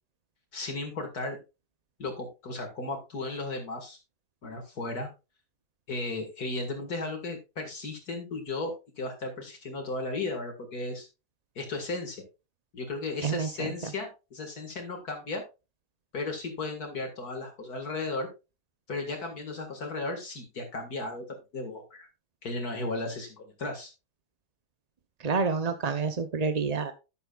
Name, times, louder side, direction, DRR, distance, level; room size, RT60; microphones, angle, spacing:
voice 1, 0.5-1.4 2.0-4.0 4.4-5.1 5.9-11.1 11.6-12.2 12.7-15.4 16.1-18.3 18.9-22.1 22.4-23.9, left 2 dB, 65° left, 3 dB, 2.4 m, -35 dB
voice 2, 25.2-26.9, right 5 dB, 40° right, 9 dB, 0.6 m, -28 dB
11.5 x 9.7 x 2.4 m, 0.28 s
omnidirectional pair, 1.7 m